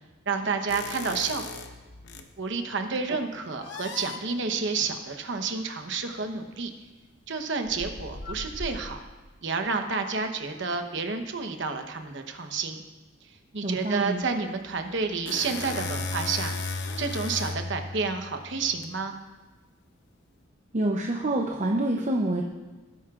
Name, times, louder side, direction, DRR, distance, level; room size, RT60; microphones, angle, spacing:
voice 1, 0.3-1.4 2.4-6.7 7.3-9.0 9.4-12.8 13.5-16.6 17.0-19.1, right 4 dB, 60° right, 6 dB, 1.0 m, -30 dB
sound 1, 0.7-2.3 3.6-4.2 6.3-6.4 7.7-9.2 14.7-18.9, left 3 dB, 60° left, 0.8 m, -36 dB
voice 2, 13.6-14.2 20.7-22.4, right 1 dB, 35° right, 1 dB, 0.7 m, -26 dB
18.5 x 9.5 x 2.5 m, 1.2 s
head